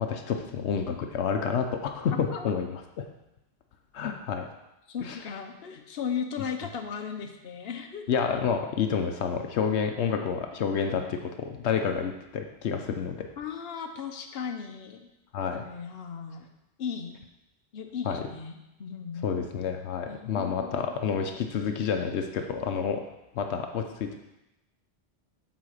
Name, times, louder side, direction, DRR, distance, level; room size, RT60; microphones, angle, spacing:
voice 1, 0.0-3.0 3.9-4.5 5.0-5.2 8.1-13.3 15.3-15.6 18.0-18.2 19.2-23.0 23.3-24.2, left 6 dB, 90° left, 5 dB, 1.0 m, -29 dB
voice 2, 2.1-2.5 4.9-8.1 13.4-15.1 15.5-16.5 16.8-17.2 17.7-19.5 20.1-20.8, left 7 dB, 65° left, 4 dB, 1.1 m, -36 dB
8.5 x 4.1 x 6.4 m, 0.92 s
omnidirectional pair, 1.1 m